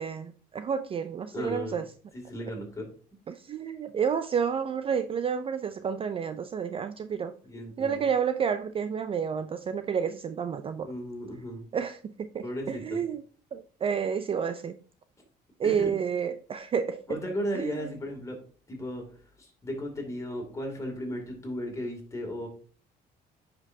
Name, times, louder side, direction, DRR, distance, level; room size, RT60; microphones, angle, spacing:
voice 1, 0.0-1.9 3.3-7.3 7.8-10.9 11.7-13.2 13.5-14.8 15.6-17.0 17.5-17.9, right 7 dB, 35° right, 0.4 m, -30 dB
voice 2, 1.3-1.8 2.1-2.9 7.4-8.1 10.8-11.6 12.4-13.0 15.6-15.9 17.1-18.4 18.7-19.0 19.4-22.5, equal, 20° left, 2.5 m, -35 dB
9.6 x 5.2 x 2.7 m
cardioid pair, 110°, 17 cm